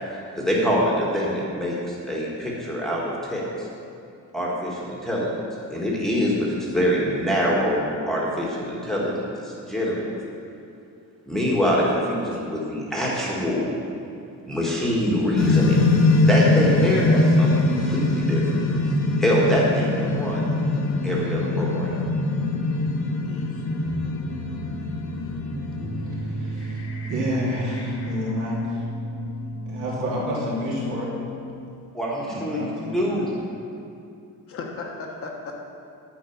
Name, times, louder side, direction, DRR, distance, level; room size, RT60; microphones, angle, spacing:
voice 1, 0.0-3.7 4.3-5.4 5.7-10.0 11.3-13.7 14.4-18.5 19.2-20.4 21.0-22.0 31.9-33.3, equal, ahead, -5 dB, 1.5 m, -25 dB
sound 1, 15.3-26.8, left 2 dB, 70° left, 1.4 m, -22 dB
sound 2, 20.0-31.7, equal, 40° right, 2.5 m, -35 dB
voice 2, 23.2-23.6 26.0-26.1 26.5-28.4 34.5-35.6, left 3 dB, 40° left, 1 dB, 1.1 m, -39 dB
voice 3, 26.4-28.8 29.7-31.1 32.2-33.3, equal, 60° right, -5 dB, 2.8 m, -29 dB
10.0 x 5.7 x 7.0 m, 2.5 s
cardioid pair, 170°, 34 cm